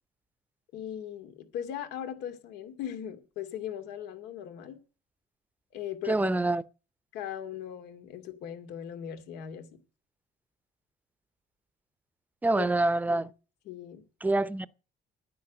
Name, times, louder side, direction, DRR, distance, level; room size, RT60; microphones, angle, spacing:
voice 1, 0.7-4.8 5.7-6.3 7.1-9.8 12.5-12.7 13.0-13.2 13.7-14.0, left 10 dB, 85° left, 2.5 m, -39 dB
voice 2, 6.1-6.6 12.4-13.3 14.2-14.7, right 2 dB, 10° right, 0.7 m, -26 dB
10.0 x 9.8 x 6.6 m
cardioid pair, 110°, 17 cm